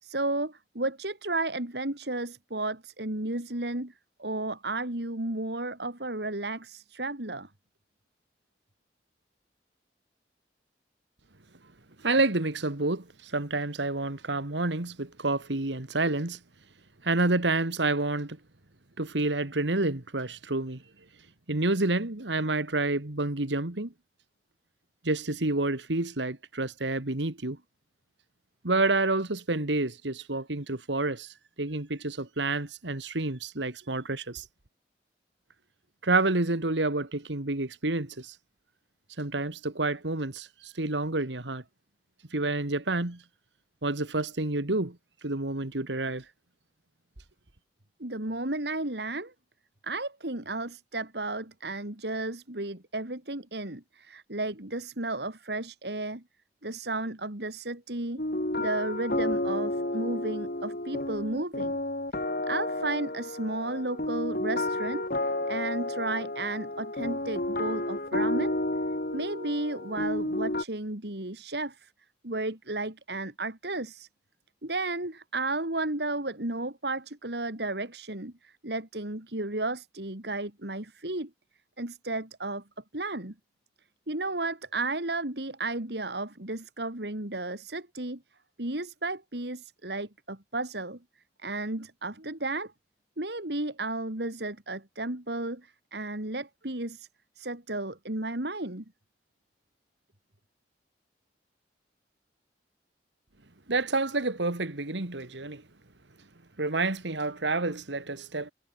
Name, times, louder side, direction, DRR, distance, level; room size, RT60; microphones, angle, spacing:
voice 1, 0.0-3.9 4.2-7.5 48.0-49.3 49.8-56.2 56.6-58.2 58.6-61.8 62.5-68.6 69.1-71.9 72.2-74.1 74.6-81.3 81.8-82.6 82.9-83.3 84.1-88.2 88.6-91.0 91.4-92.7 93.2-97.1 97.4-98.8, right 2 dB, 65° right, 3.1 m, -33 dB
voice 2, 12.0-16.4 17.0-18.4 19.0-20.8 21.5-23.9 25.0-27.6 28.6-34.4 36.0-38.3 39.2-41.6 42.3-43.2 43.8-45.0 45.2-46.2 103.7-105.6 106.6-108.5, right 2 dB, 80° right, 2.1 m, -29 dB
sound 1, 58.2-70.6, left 1 dB, 50° left, 3.0 m, -31 dB
head